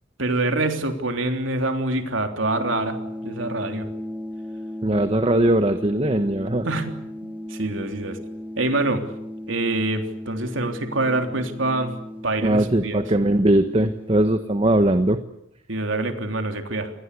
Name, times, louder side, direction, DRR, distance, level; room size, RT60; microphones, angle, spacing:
voice 1, 0.2-3.9 6.6-8.2 8.6-9.0 9.5-11.9 12.2-13.0 15.7-16.9, right 2 dB, 80° right, 5 dB, 3.5 m, -25 dB
sound 1, 2.4-14.4, left 1 dB, 10° right, 2.2 m, -36 dB
voice 2, 4.8-6.7 12.4-15.2, right 1 dB, 30° right, 9 dB, 1.2 m, -20 dB
28.0 x 21.0 x 8.4 m, 0.79 s
head